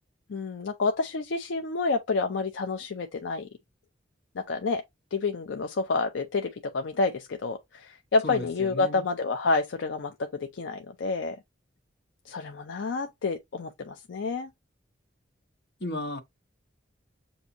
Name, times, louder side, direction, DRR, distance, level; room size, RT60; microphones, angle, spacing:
voice 1, 0.3-3.5 4.4-4.8 5.1-11.4 12.3-14.5, left 3 dB, 80° left, 0.5 m, -29 dB
voice 2, 8.2-9.1 12.4-12.8 15.8-16.2, left 1 dB, 65° left, 1.1 m, -36 dB
6.9 x 2.7 x 2.6 m
head